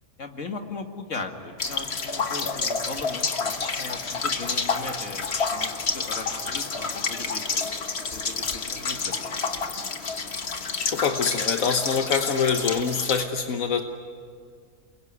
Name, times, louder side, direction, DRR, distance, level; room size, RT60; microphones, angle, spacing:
voice 1, 0.2-7.7 8.1-9.3, left 3 dB, 65° left, 4 dB, 2.4 m, -38 dB
sound 1, 1.6-13.2, left 4 dB, 50° left, 1.6 m, -29 dB
voice 2, 10.5-13.8, left 6 dB, 85° left, 5 dB, 1.6 m, -25 dB
29.0 x 22.0 x 9.4 m, 2.1 s
omnidirectional pair, 1.4 m